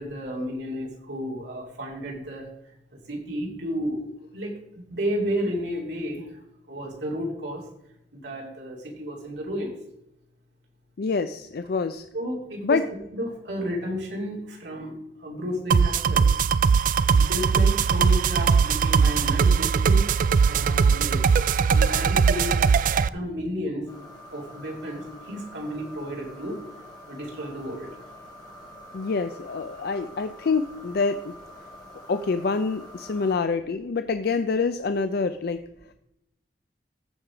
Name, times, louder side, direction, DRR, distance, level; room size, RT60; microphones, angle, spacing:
voice 1, 0.0-2.4 3.1-4.1 4.3-6.3 6.7-7.6 8.1-9.7 12.1-12.8 13.1-14.9 15.2-16.2 17.1-20.1 20.4-21.2 21.7-22.6 23.0-23.9 24.3-26.6 27.0-27.9, equal, 80° right, -1 dB, 2.8 m, -32 dB
voice 2, 11.0-12.0 12.6-12.8 28.9-31.4 32.1-35.6, left 4 dB, 60° left, 10 dB, 0.4 m, -26 dB
sound 1, 15.7-23.1, right 6 dB, 50° right, 0.3 m, -20 dB
sound 2, 23.9-33.4, left 1 dB, 25° left, 3.1 m, -46 dB
14.0 x 4.8 x 5.0 m, 0.83 s
head